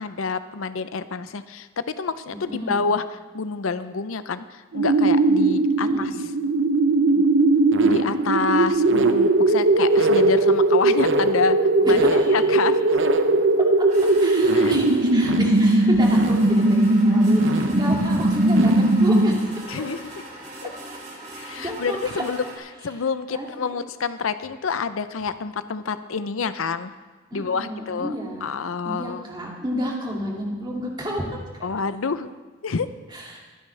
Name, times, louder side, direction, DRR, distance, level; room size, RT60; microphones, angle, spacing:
voice 1, 0.0-6.1 7.2-7.3 7.8-12.9 14.5-14.7 19.7-20.0 20.6-20.7 21.4-22.4 22.8-26.9 27.3-28.1 28.4-29.2 31.6-32.3 32.6-32.9, left 5 dB, 90° left, 12 dB, 0.6 m, -28 dB
voice 2, 2.3-2.8 5.8-6.1 11.9-12.4 14.2-19.8 21.5-22.2 23.3-23.7 27.3-28.5 28.8-31.7 33.1-33.4, equal, 20° right, -2 dB, 2.4 m, -31 dB
sound 1, 4.7-19.6, right 2 dB, 65° right, 0.8 m, -19 dB
sound 2, 13.9-22.6, right 1 dB, 40° right, 2.8 m, -40 dB
23.5 x 9.7 x 3.3 m, 1.4 s
head